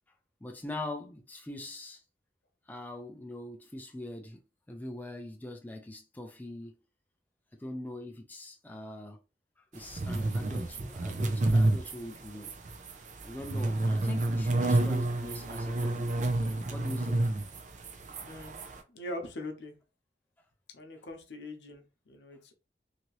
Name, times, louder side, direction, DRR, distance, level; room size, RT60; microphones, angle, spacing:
voice 1, 0.4-2.0 2.7-4.4 4.7-6.7 7.6-9.2 9.7-12.5 13.2-17.2, left 1 dB, 10° left, 0.4 m, -42 dB
sound 1, 9.8-18.8, right 2 dB, 45° right, 0.5 m, -29 dB
voice 2, 18.2-18.6 18.9-19.7 20.7-22.5, left 1 dB, 80° left, 0.8 m, -42 dB
2.8 x 2.7 x 3.0 m
head